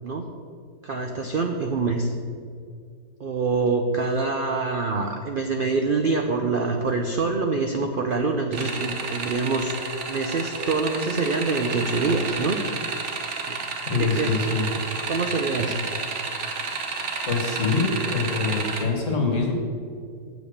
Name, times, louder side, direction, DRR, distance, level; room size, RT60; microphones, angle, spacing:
voice 1, 0.8-2.1 3.2-9.7 10.1-12.6 13.5-13.6 14.0-14.3 15.0-15.7, right 3 dB, 80° right, 4 dB, 0.4 m, -25 dB
sound 1, 8.5-18.8, right 4 dB, 50° right, 1.2 m, -31 dB
voice 2, 13.9-14.6 17.3-19.5, left 3 dB, 50° left, 1 dB, 1.8 m, -24 dB
7.9 x 7.2 x 6.4 m, 2.3 s
omnidirectional pair, 1.8 m